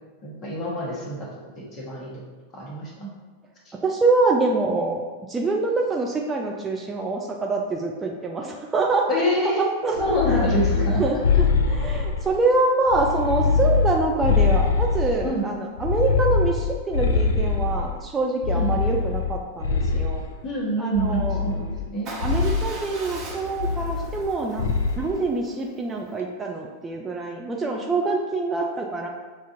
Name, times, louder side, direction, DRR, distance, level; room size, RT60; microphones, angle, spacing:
voice 1, 0.2-1.3 1.6-2.1 2.5-3.1 9.1-9.6 10.0-11.0 15.2-15.5 18.5-18.7 20.4-22.1, equal, 30° left, -4 dB, 1.2 m, -26 dB
voice 2, 3.8-5.0 5.3-9.1 9.4-10.2 10.8-20.2 20.8-21.4 22.2-24.7 25.0-29.1, right 3 dB, 15° right, 0 dB, 0.4 m, -25 dB
sound 1, 10.0-12.4 12.9-15.3 15.8-18.0 18.4-20.3 21.0-21.9 22.2-22.7 23.6-24.3 24.6-25.0, left 5 dB, 65° left, 0.3 m, -23 dB
Motorcycle / Engine starting / Idling, 22.1-26.2, right 3 dB, 35° right, 1.2 m, -40 dB
6.5 x 2.5 x 2.6 m, 1.4 s
figure-of-eight pair, 90°, 0 cm